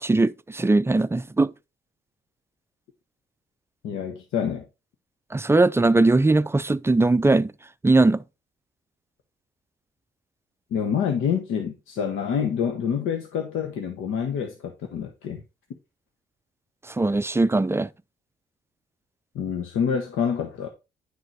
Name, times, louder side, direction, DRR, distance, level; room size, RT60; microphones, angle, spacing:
voice 1, 0.0-1.5 5.3-7.5 7.8-8.2 16.9-17.9, right 2 dB, 10° right, 0.4 m, -20 dB
voice 2, 3.8-4.7 10.7-15.4 19.3-20.7, left 7 dB, 85° left, 1.2 m, -27 dB
10.0 x 4.0 x 4.6 m
cardioid pair, 90°, 20 cm